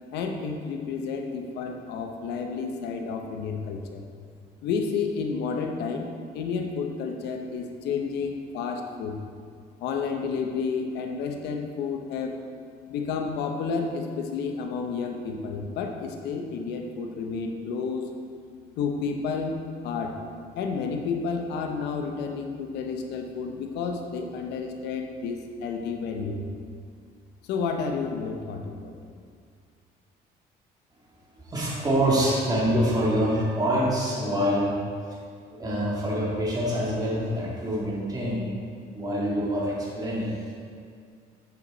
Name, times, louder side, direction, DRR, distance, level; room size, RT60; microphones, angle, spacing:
voice 1, 0.1-4.1 4.6-9.2 9.8-12.4 12.9-18.1 18.8-20.2 20.5-26.5 27.4-28.9, left 5 dB, 85° left, 3 dB, 0.9 m, -31 dB
voice 2, 31.4-34.7 35.6-38.5 38.9-40.5, equal, 20° right, -5 dB, 2.0 m, -25 dB
8.0 x 7.1 x 4.0 m, 2.2 s
cardioid pair, 110°, 17 cm